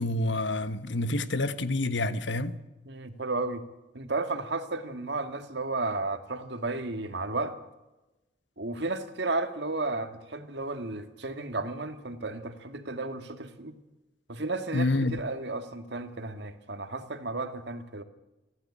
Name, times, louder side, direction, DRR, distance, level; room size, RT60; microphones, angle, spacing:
voice 1, 0.0-2.6 14.7-15.2, left 2 dB, 80° left, 1.4 m, -28 dB
voice 2, 2.9-3.6 3.9-7.6 8.6-13.8 14.3-18.0, right 2 dB, 65° right, 2.1 m, -33 dB
24.5 x 15.5 x 8.6 m
head